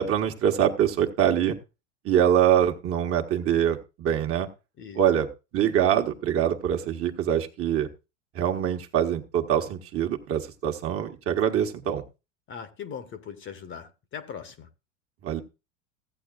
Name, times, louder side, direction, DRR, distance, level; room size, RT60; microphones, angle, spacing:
voice 1, 0.0-1.6 2.0-4.5 4.9-5.3 5.5-7.9 8.3-12.0 15.2-15.4, right 10 dB, 35° right, 1.4 m, -24 dB
voice 2, 12.5-14.7, left 7 dB, 30° left, 1.1 m, -40 dB
15.5 x 8.4 x 2.4 m
hypercardioid pair, 100°, 38 cm